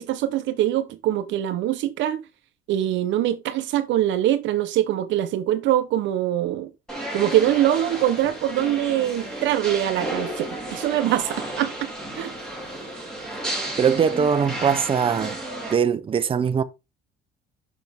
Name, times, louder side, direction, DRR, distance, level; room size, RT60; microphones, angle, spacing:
voice 1, 0.0-2.2 2.7-6.7 7.1-12.3, right 12 dB, 70° right, 0.8 m, -23 dB
sound 1, 6.9-15.7, right 1 dB, 5° left, 3.0 m, -33 dB
voice 2, 13.8-15.4 15.7-16.6, right 7 dB, 25° right, 0.6 m, -21 dB
6.2 x 6.0 x 3.5 m
cardioid pair, 140°, 20 cm